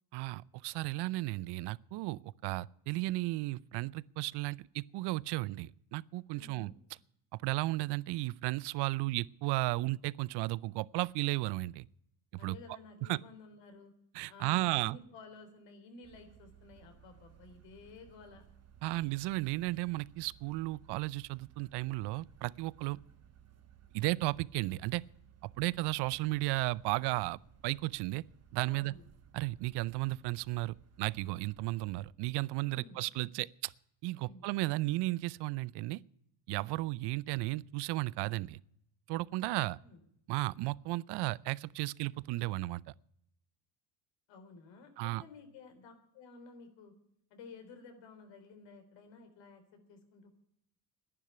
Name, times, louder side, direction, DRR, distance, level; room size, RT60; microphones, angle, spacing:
voice 1, 0.1-6.7 7.4-11.8 12.4-12.5 13.1-13.2 14.1-15.0 18.8-23.0 23.9-25.0 25.6-28.2 28.5-28.9 29.3-33.7 34.0-36.0 36.5-38.6 39.1-39.8 40.3-42.8 45.0-45.2, right 20 dB, 60° right, 0.6 m, -34 dB
voice 2, 6.4-6.7 12.4-13.9 14.3-18.4 28.7-29.1 32.7-33.0 34.2-34.5 39.8-40.0 44.3-46.9 47.3-50.3, left 4 dB, 70° left, 3.7 m, -53 dB
sound 1, 16.0-32.1, right 9 dB, 35° right, 1.4 m, -60 dB
11.0 x 10.0 x 9.6 m
supercardioid pair, 90°, 46 cm